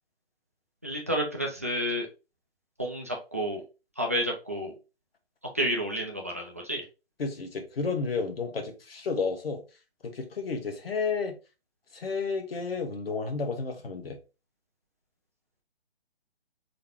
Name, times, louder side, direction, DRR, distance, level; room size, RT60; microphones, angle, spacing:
voice 1, 0.8-2.1 2.8-3.6 4.0-4.7 5.5-6.8, equal, 15° right, 0.3 m, -30 dB
voice 2, 7.2-9.6 10.0-11.3 11.9-14.2, left 4 dB, 65° left, 1.1 m, -31 dB
3.8 x 3.4 x 3.0 m
figure-of-eight pair, 135°, 32 cm